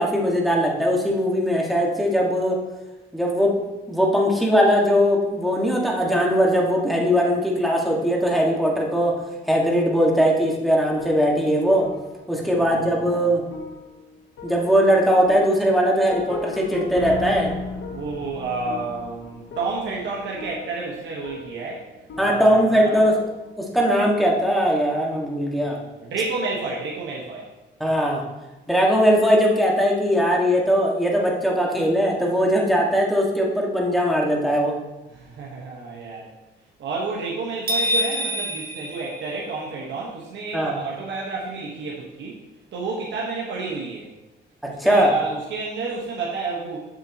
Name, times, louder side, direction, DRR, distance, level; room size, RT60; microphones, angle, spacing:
voice 1, 0.0-2.6 3.1-3.6 3.9-9.2 9.5-11.9 12.3-13.4 14.4-17.5 22.2-23.2 23.6-25.8 27.8-28.2 28.7-34.7 40.5-40.7 44.8-45.1, equal, ahead, -2 dB, 1.7 m, -20 dB
sound 1, 10.5-23.6, left 3 dB, 70° left, 1.1 m, -37 dB
voice 2, 12.3-13.0 17.9-21.8 22.2-23.1 25.5-27.5 35.1-36.3 36.8-42.4 42.7-44.1 44.7-46.8, right 3 dB, 70° right, -3 dB, 1.4 m, -30 dB
sound 2, 37.7-39.9, equal, 50° right, 1.6 m, -26 dB
7.2 x 7.1 x 2.9 m, 1.1 s
cardioid pair, 90°, 20 cm